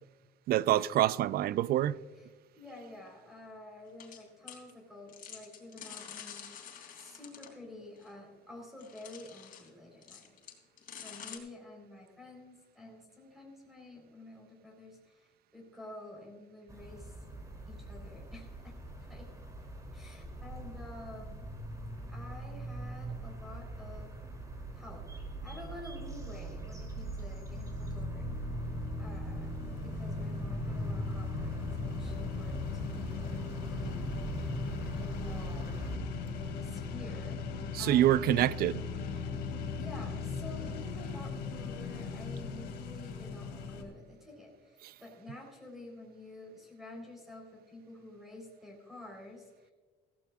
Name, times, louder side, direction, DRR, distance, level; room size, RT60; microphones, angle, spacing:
voice 1, 0.5-2.0 37.7-38.8, right 13 dB, 65° right, 0.5 m, -26 dB
voice 2, 2.6-6.7 7.0-10.4 10.9-17.1 17.7-18.8 19.1-19.3 19.9-21.5 22.1-24.1 24.7-28.3 29.0-29.5 29.8-34.2 35.0-35.8 36.6-37.4 37.8-38.4 39.8-49.7, left 2 dB, ahead, 4.0 m, -50 dB
sound 1, 4.0-4.2 4.5-4.7 5.1-7.6 8.0-8.1 8.8-9.7 10.0-11.4, left 8 dB, 55° left, 3.0 m, -48 dB
sound 2, 16.7-36.0, right 1 dB, 20° right, 3.0 m, -41 dB
sound 3, 27.5-43.8, left 4 dB, 80° left, 2.3 m, -39 dB
16.0 x 15.0 x 2.4 m
cardioid pair, 110°, 17 cm